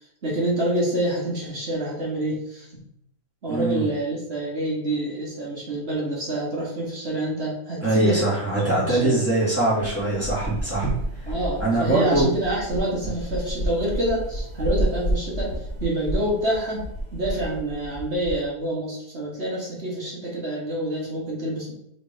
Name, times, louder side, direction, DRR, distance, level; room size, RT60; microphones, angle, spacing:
voice 1, 0.2-2.8 3.4-8.2 8.6-9.2 11.3-15.5 15.8-16.8 17.1-21.7, right 1 dB, 45° right, -4 dB, 2.2 m, -27 dB
voice 2, 3.4-3.9 7.8-10.9 11.2-11.3 11.6-12.3 13.0-13.1, right 2 dB, 10° right, -8 dB, 2.5 m, -22 dB
sound 1, 9.7-18.4, right 1 dB, 20° left, 1.6 m, -30 dB
5.6 x 3.8 x 4.7 m, 0.76 s
omnidirectional pair, 1.6 m